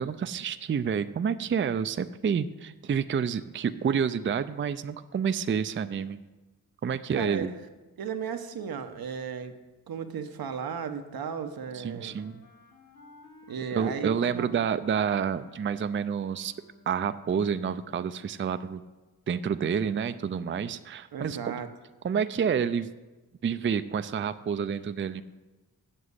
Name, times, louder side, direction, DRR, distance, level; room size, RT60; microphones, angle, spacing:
voice 1, 0.0-6.2 6.8-7.5 11.7-12.4 13.7-16.5 16.9-18.8 19.3-21.5 22.0-22.9 23.4-25.2, right 7 dB, 35° right, 12 dB, 0.4 m, -29 dB
voice 2, 7.1-7.5 8.0-9.6 9.9-12.2 13.5-14.6 21.1-21.7, right 7 dB, 80° right, 8 dB, 0.9 m, -35 dB
Wind instrument woodwind instrument, 11.6-17.1, left 5 dB, 55° left, 2.1 m, -53 dB
7.6 x 7.1 x 8.1 m, 1.2 s
cardioid pair, 70°, 36 cm